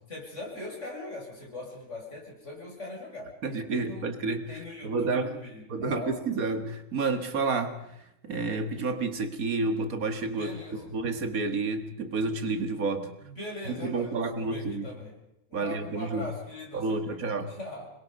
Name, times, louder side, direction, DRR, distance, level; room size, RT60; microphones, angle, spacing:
voice 1, 0.1-4.1 4.5-6.2 10.4-10.9 13.2-15.1 15.5-17.9, left 2 dB, 55° left, 0 dB, 6.5 m, -41 dB
voice 2, 3.4-4.5 4.8-5.3 5.7-7.8 8.2-10.5 10.9-13.1 13.7-14.9 15.5-16.3 16.7-17.5, right 3 dB, 80° right, 8 dB, 2.1 m, -30 dB
27.0 x 21.0 x 5.3 m, 0.83 s
omnidirectional pair, 1.5 m